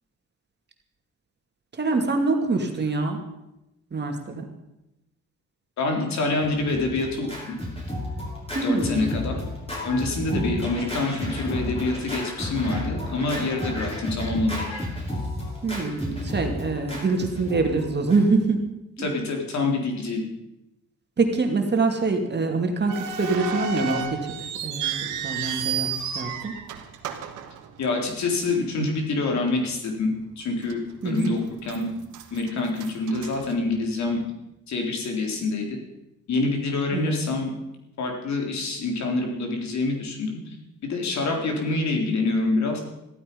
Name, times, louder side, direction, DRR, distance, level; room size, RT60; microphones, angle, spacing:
voice 1, 1.8-3.2 3.9-4.5 8.5-9.2 10.3-10.7 15.6-18.6 19.0-19.1 21.2-24.3 24.6-26.5 31.0-31.3 36.9-37.1, right 3 dB, 35° right, 3 dB, 2.7 m, -25 dB
voice 2, 5.8-7.6 8.6-9.4 9.8-14.6 19.0-20.2 27.8-30.8 31.0-31.9 32.3-34.2 34.7-35.7 36.3-37.5 38.0-40.3 40.9-42.8, left 3 dB, 65° left, 2 dB, 3.8 m, -26 dB
Scratching (performance technique), 6.4-18.5, left 1 dB, 20° left, 6.0 m, -32 dB
sound 1, 22.9-28.2 28.5-28.6 29.3-29.5 30.0-30.1 30.7-31.3 31.6-34.1, right 6 dB, 85° right, 1.8 m, -32 dB
15.0 x 13.0 x 5.5 m, 0.92 s
cardioid pair, 90°, 30 cm